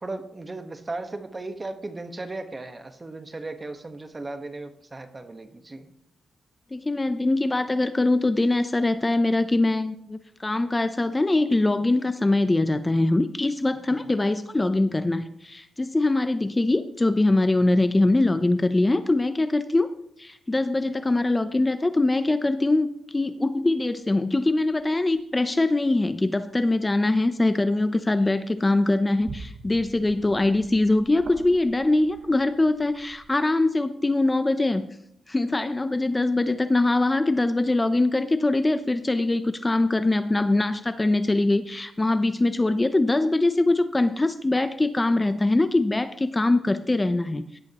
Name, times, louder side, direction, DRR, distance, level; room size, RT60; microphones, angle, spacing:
voice 1, 0.0-5.9 13.9-14.1, right 2 dB, 25° right, 7 dB, 1.3 m, -36 dB
voice 2, 6.7-19.9 20.2-34.9 35.3-47.6, left 2 dB, 20° left, 11 dB, 0.6 m, -23 dB
sound 1, 24.7-25.2 26.4-26.5 27.0-27.3 27.7-28.0 28.4-33.4, right 4 dB, 55° right, 1.0 m, -45 dB
17.0 x 11.5 x 3.0 m, 0.72 s
cardioid pair, 85°, 0 cm